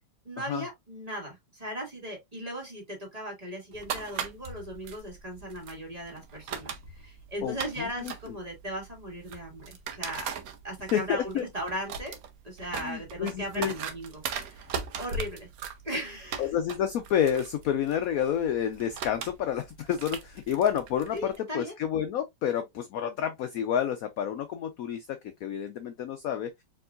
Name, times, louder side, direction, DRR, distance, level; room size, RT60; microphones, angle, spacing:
voice 1, 0.2-10.3 10.6-12.2 12.4-14.7 15.0-15.5 15.8-16.5 21.1-21.7, right 1 dB, 20° right, 2.2 m, -38 dB
sound 1, 3.7-21.4, right 6 dB, 60° right, 1.1 m, -40 dB
voice 2, 7.4-8.1 10.9-11.4 12.7-13.7 16.4-26.5, left 9 dB, 70° left, 0.8 m, -29 dB
4.6 x 3.7 x 2.4 m
omnidirectional pair, 2.0 m